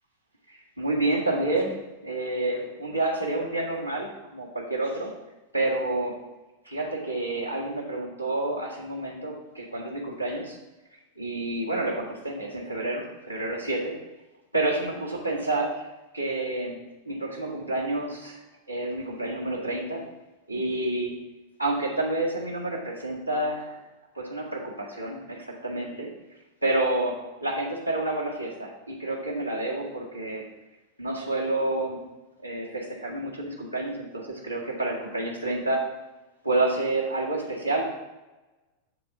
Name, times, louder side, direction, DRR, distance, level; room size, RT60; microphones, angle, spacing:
voice 1, 0.8-1.8 2.0-5.1 5.5-6.1 6.7-10.6 11.2-13.9 14.5-15.8 16.1-16.8 17.1-18.4 18.7-20.0 20.5-21.1 21.6-23.8 24.2-26.1 26.6-27.1 27.4-30.5 31.0-32.0 32.4-35.8 36.4-37.9, right 2 dB, 85° left, -1 dB, 1.8 m, -29 dB
11.0 x 3.7 x 5.7 m, 1.1 s
figure-of-eight pair, 90°, 0 cm